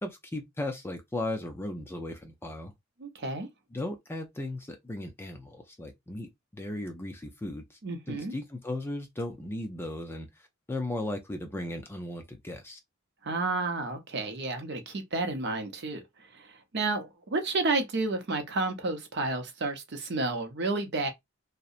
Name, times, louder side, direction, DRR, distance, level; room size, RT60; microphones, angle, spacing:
voice 1, 0.0-2.7 3.7-7.8 8.1-10.3 10.7-12.8, left 1 dB, 10° left, 0.4 m, -36 dB
voice 2, 3.0-3.5 7.8-8.3 13.2-16.0 16.3-21.1, right 3 dB, 55° right, 0.6 m, -31 dB
2.7 x 2.1 x 2.4 m
head